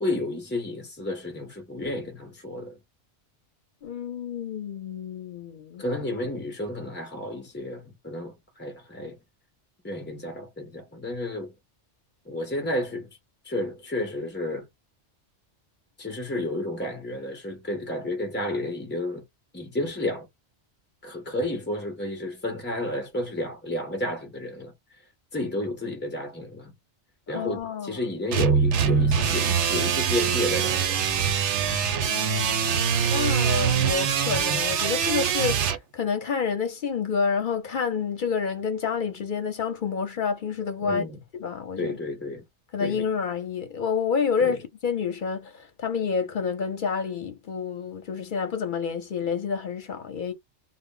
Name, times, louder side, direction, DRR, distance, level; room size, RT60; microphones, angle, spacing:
voice 1, 0.0-2.8 5.8-9.2 9.8-11.5 12.3-13.1 13.4-14.7 16.0-19.2 19.5-20.3 21.0-24.7 25.3-26.7 27.3-31.0 40.8-41.2 41.8-42.4 42.8-43.0 44.4-44.6, left 1 dB, 20° left, 0.3 m, -31 dB
voice 2, 3.8-5.8 6.2-6.3 27.3-28.1 32.1-32.8 33.0-41.0 41.3-42.0 42.7-50.3, left 6 dB, 55° left, 0.7 m, -29 dB
sound 1, 28.3-35.8, right 7 dB, 85° right, 0.9 m, -23 dB
2.1 x 2.0 x 3.6 m
omnidirectional pair, 1.2 m